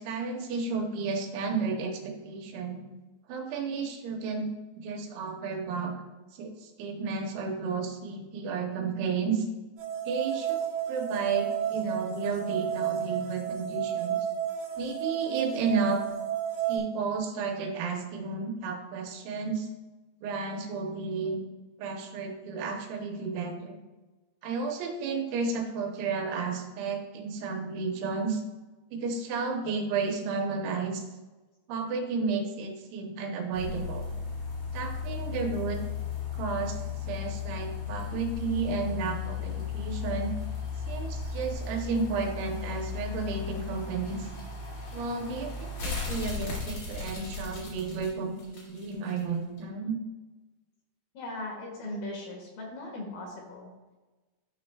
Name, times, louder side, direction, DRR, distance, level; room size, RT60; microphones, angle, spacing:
voice 1, 0.0-2.8 3.3-4.5 4.8-5.9 6.3-9.5 10.1-10.6 10.9-14.2 14.8-16.0 16.7-19.7 20.2-21.4 21.8-23.8 24.4-28.4 28.9-31.0 31.7-34.0 34.7-35.8 36.4-36.8 37.1-40.3 40.9-44.3 44.9-50.0, right 4 dB, 85° right, 2 dB, 3.4 m, -32 dB
sound 1, 9.8-16.8, right 9 dB, 65° right, 4.3 m, -32 dB
sound 2, 33.5-49.2 49.6-49.7, left 6 dB, 45° left, 3.2 m, -36 dB
voice 2, 51.1-53.7, left 1 dB, 60° left, -1 dB, 3.1 m, -38 dB
12.5 x 6.7 x 2.3 m, 1.2 s
omnidirectional pair, 5.3 m